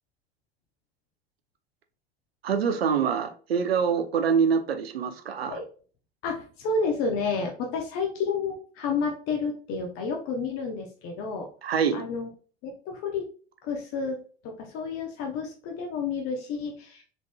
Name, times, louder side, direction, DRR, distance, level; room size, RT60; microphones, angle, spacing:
voice 1, 2.4-5.6 11.6-12.0, right 6 dB, 80° right, 8 dB, 0.5 m, -25 dB
voice 2, 6.2-11.5 11.9-12.3 12.6-13.2 13.6-14.2 14.4-17.0, left 4 dB, 50° left, 2 dB, 0.8 m, -30 dB
3.9 x 3.5 x 2.2 m, 0.40 s
figure-of-eight pair, 65°, 30 cm